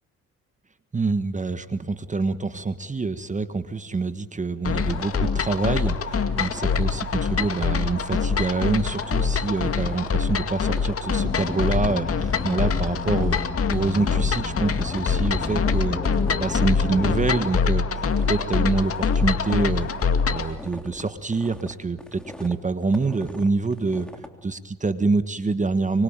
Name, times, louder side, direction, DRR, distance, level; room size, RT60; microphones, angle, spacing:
voice 1, 0.9-13.4 13.7-17.8 18.3-19.9 20.2-24.1 24.4-26.0, right 3 dB, 25° right, 11 dB, 1.4 m, -26 dB
sound 1, 4.6-20.5, left 5 dB, 50° left, 2.2 m, -24 dB
sound 2, 4.7-24.3, equal, 5° left, 3.2 m, -43 dB
sound 3, 11.2-17.2, left 4 dB, 25° left, 1.8 m, -33 dB
25.0 x 24.0 x 9.0 m, 1.1 s
cardioid pair, 90°, 30 cm